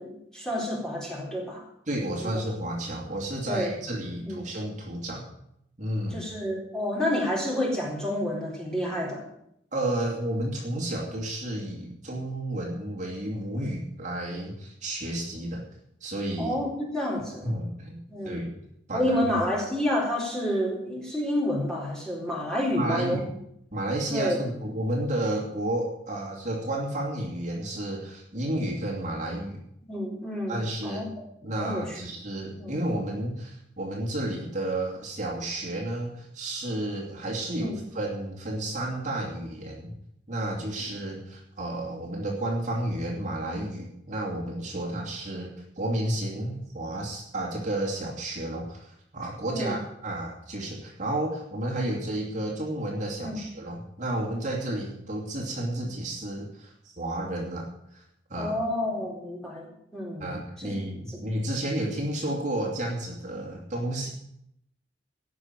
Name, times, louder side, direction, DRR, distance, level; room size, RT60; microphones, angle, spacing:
voice 1, 0.0-1.6 2.2-2.4 3.5-3.7 4.2-4.4 6.1-9.2 16.4-17.5 18.1-18.4 18.9-23.3 24.1-24.4 29.9-31.1 31.5-32.0 32.6-32.8 37.5-37.8 49.5-49.8 53.2-53.4 58.4-60.3 60.6-60.7, left 1 dB, 5° left, -3 dB, 4.0 m, -29 dB
voice 2, 1.9-5.3 5.8-6.2 9.7-15.6 16.0-16.6 17.4-18.0 18.2-18.5 18.9-19.2 22.7-23.3 23.7-29.6 30.5-31.1 31.4-39.9 40.3-58.0 58.3-58.6 60.2-64.1, right 1 dB, 40° right, -1 dB, 2.7 m, -31 dB
17.0 x 6.2 x 9.1 m, 0.76 s
head